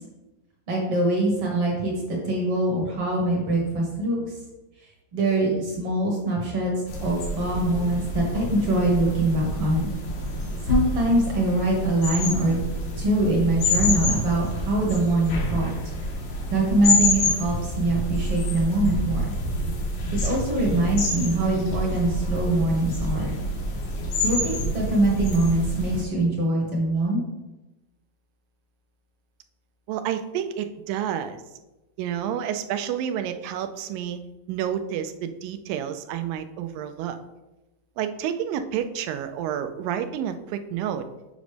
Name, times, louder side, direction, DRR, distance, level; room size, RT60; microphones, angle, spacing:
voice 1, 0.7-4.4 5.1-6.7 7.0-9.9 10.7-12.6 13.0-15.7 16.5-19.3 20.1-23.4 24.2-27.2, right 1 dB, 55° right, -2 dB, 1.7 m, -23 dB
sound 1, 6.9-26.0, left 1 dB, 90° left, 3.1 m, -28 dB
voice 2, 29.9-31.4 32.0-34.2 34.5-37.2 38.0-41.0, right 9 dB, 90° right, 8 dB, 2.3 m, -29 dB
8.1 x 5.1 x 3.3 m, 1.1 s
omnidirectional pair, 3.9 m